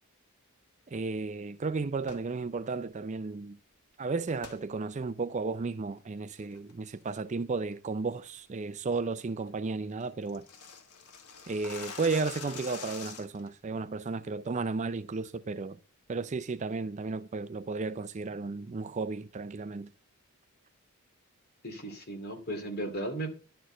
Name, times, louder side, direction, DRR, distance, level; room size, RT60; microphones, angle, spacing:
voice 1, 0.9-3.6 4.0-10.4 11.5-15.8 16.1-19.9, right 4 dB, 30° right, 0.4 m, -33 dB
sound 1, 2.0-2.3 4.4-4.6 5.1-5.2 5.7-6.0 6.4-6.7 7.1-7.3 7.7-7.8 8.2-8.4 8.8-8.9 9.2-9.3 9.5-9.6 9.8-13.5, left 5 dB, 90° left, 1.4 m, -45 dB
voice 2, 21.6-23.3, right 1 dB, 45° left, 2.5 m, -36 dB
11.0 x 4.5 x 7.8 m
head